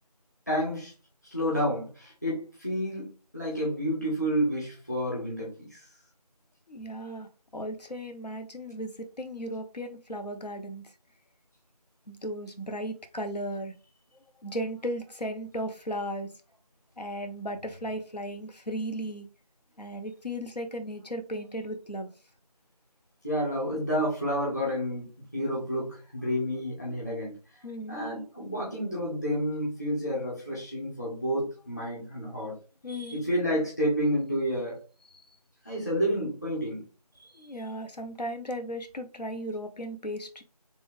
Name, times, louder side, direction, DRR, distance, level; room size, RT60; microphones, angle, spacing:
voice 1, 0.5-0.9 1.3-3.1 3.3-5.8 23.2-27.4 27.9-32.5 33.1-34.8 35.6-36.8, equal, 25° left, 1.5 m, -30 dB
voice 2, 6.7-10.9 12.1-13.7 14.4-16.3 17.0-19.3 19.8-22.1 27.6-28.0 32.8-33.2 37.2-40.4, equal, 85° left, 1.0 m, -36 dB
3.5 x 3.4 x 3.5 m
figure-of-eight pair, 180°, 21 cm